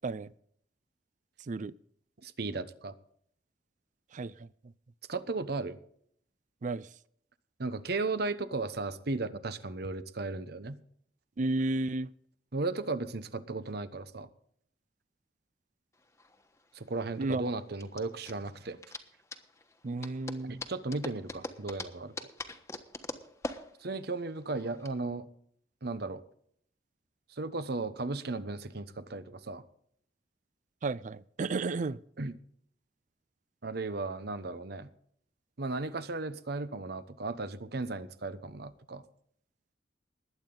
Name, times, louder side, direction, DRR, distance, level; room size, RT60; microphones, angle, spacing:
voice 1, 2.2-2.9 5.1-5.8 7.6-10.8 12.5-14.3 16.7-18.8 20.4-22.3 23.8-25.3 25.8-26.2 27.3-29.6 32.2-32.3 33.6-34.9 35.6-39.0, right 3 dB, 65° right, 1.0 m, -35 dB
voice 2, 4.1-4.5 6.6-6.9 11.4-12.1 17.2-17.4 19.8-20.6 30.8-32.0, right 3 dB, 45° right, 0.4 m, -32 dB
sound 1, 16.0-24.9, left 2 dB, 15° left, 1.3 m, -43 dB
20.5 x 8.9 x 3.9 m
head